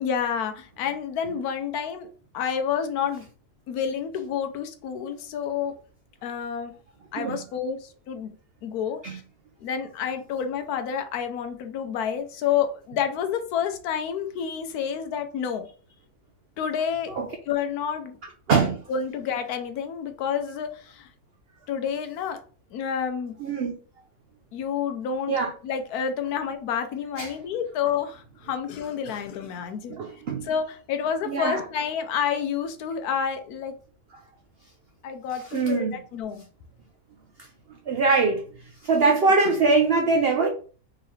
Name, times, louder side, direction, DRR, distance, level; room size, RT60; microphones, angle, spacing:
voice 1, 0.0-2.1 2.3-3.2 3.7-5.7 6.2-6.7 7.1-8.3 8.6-9.2 9.6-15.7 16.6-17.1 17.5-18.2 18.9-21.1 21.7-22.4 22.7-23.4 24.5-25.4 25.6-29.9 30.4-33.8 35.0-35.9 36.1-36.4, left 7 dB, 75° left, 1.1 m, -29 dB
voice 2, 18.5-18.8 23.4-23.7 25.3-25.5 27.2-27.3 29.9-30.5 31.3-31.6 35.5-36.0 37.9-38.4 38.8-40.5, right 4 dB, 80° right, 0.5 m, -22 dB
3.6 x 3.0 x 3.2 m
omnidirectional pair, 1.7 m